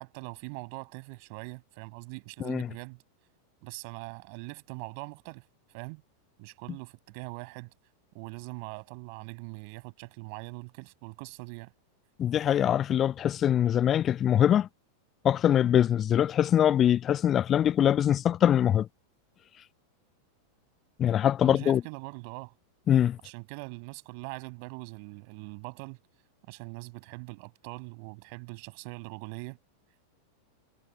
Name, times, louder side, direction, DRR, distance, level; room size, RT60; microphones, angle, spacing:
voice 1, 0.0-3.0 3.6-6.0 6.4-7.7 8.1-11.7 21.4-22.5 23.2-26.0 26.5-29.6, right 36 dB, 45° right, 7.3 m, -42 dB
voice 2, 12.2-14.7 15.2-18.9 21.0-21.8 22.9-23.2, left 10 dB, 25° left, 0.4 m, -23 dB
figure-of-eight pair, 90°, 0 cm